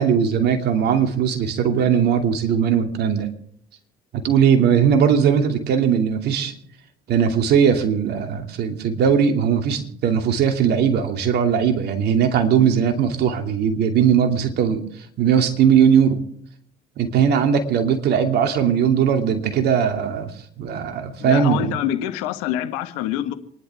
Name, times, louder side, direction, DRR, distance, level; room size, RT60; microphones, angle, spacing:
voice 1, 0.0-3.3 4.1-6.6 7.1-14.8 15.2-16.2 17.0-21.8, right 7 dB, 60° right, 5 dB, 2.7 m, -19 dB
voice 2, 21.2-23.3, left 12 dB, 80° left, 9 dB, 1.6 m, -25 dB
27.5 x 11.0 x 3.6 m, 0.66 s
hypercardioid pair, 65°, 19 cm